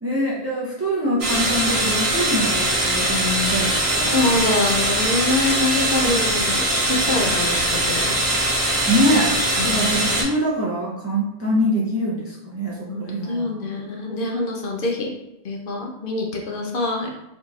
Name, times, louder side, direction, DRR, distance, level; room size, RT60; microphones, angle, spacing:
voice 1, 0.0-4.4 6.0-6.2 6.6-6.7 8.9-9.3 9.6-13.7, equal, 20° right, -5 dB, 0.5 m, -24 dB
sound 1, 1.2-10.2, right 1 dB, 75° right, 1.1 m, -21 dB
voice 2, 4.1-8.2 9.6-10.1 12.9-15.1 15.4-17.1, left 2 dB, 60° left, 0 dB, 0.7 m, -25 dB
3.6 x 2.8 x 2.4 m, 0.89 s
omnidirectional pair, 1.1 m